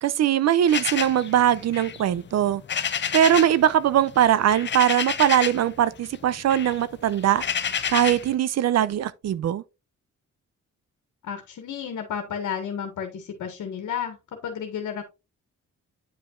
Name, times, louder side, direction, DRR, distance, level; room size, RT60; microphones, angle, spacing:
voice 1, 0.0-2.6 3.1-9.6, right 11 dB, 60° right, 0.5 m, -21 dB
sound 1, 0.7-3.6 3.9-5.7 6.0-8.3, left 7 dB, 40° left, 0.6 m, -30 dB
voice 2, 11.2-14.2 14.4-15.0, left 8 dB, 80° left, 1.5 m, -32 dB
9.1 x 5.3 x 2.5 m
cardioid pair, 120°, 29 cm